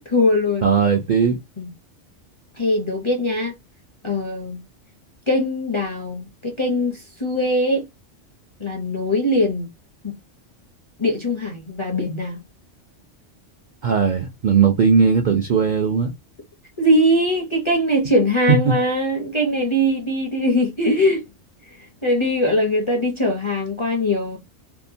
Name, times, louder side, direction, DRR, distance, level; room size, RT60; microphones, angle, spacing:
voice 1, 0.0-0.7 1.6-1.7 2.6-3.5 4.0-4.6 5.3-7.9 8.6-9.7 10.0-10.1 11.0-12.4 16.8-21.2 22.0-24.4, left 1 dB, 35° left, 0.5 m, -21 dB
voice 2, 0.6-1.4 13.8-16.1 18.5-18.7, right 6 dB, 60° right, 0.5 m, -18 dB
2.8 x 2.1 x 2.5 m
omnidirectional pair, 1.3 m